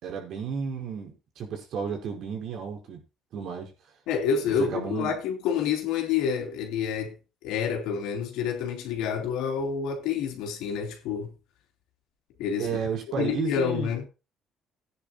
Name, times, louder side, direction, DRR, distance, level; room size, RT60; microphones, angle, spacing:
voice 1, 0.0-3.0 3.3-3.7 4.4-5.1 12.6-13.9, right 6 dB, 65° right, 5.1 m, -32 dB
voice 2, 4.1-7.2 7.4-11.3 12.4-12.8 13.2-14.1, left 7 dB, 80° left, 3.3 m, -28 dB
17.0 x 9.8 x 2.3 m
supercardioid pair, 80°, 0 cm